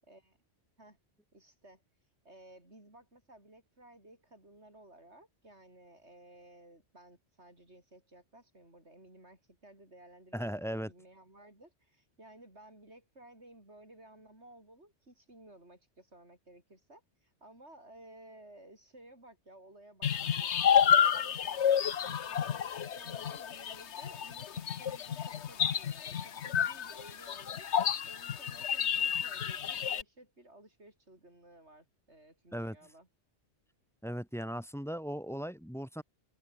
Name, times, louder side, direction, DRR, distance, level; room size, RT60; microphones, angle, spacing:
voice 1, 0.0-0.4 0.8-1.0 1.3-1.8 2.2-22.5 22.8-27.7 28.1-33.1, right 1 dB, 80° right, 8.2 m, -56 dB
voice 2, 10.3-10.9 32.5-32.8 34.0-36.0, equal, ahead, 4.3 m, -37 dB
sound 1, 20.0-30.0, left 8 dB, 80° left, 1.3 m, -30 dB
open air
omnidirectional pair, 1.1 m